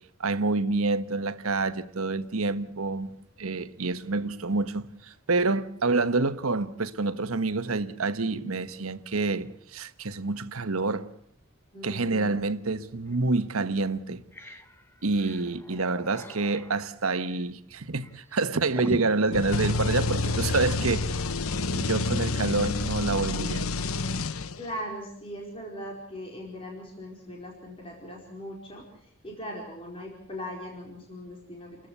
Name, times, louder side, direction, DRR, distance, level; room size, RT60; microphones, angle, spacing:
voice 1, 0.2-3.1 3.4-11.1 11.8-14.2 15.0-21.1 21.7-23.7, right 3 dB, 85° right, 1.2 m, -27 dB
voice 2, 8.2-8.6 11.7-12.4 24.6-31.9, equal, 25° left, 4.6 m, -40 dB
sound 1, 13.1-13.2 13.7-13.8 14.1-20.5, equal, 10° left, 1.1 m, -43 dB
sound 2, 19.3-24.8, left 3 dB, 85° left, 0.9 m, -28 dB
29.5 x 14.5 x 8.3 m
head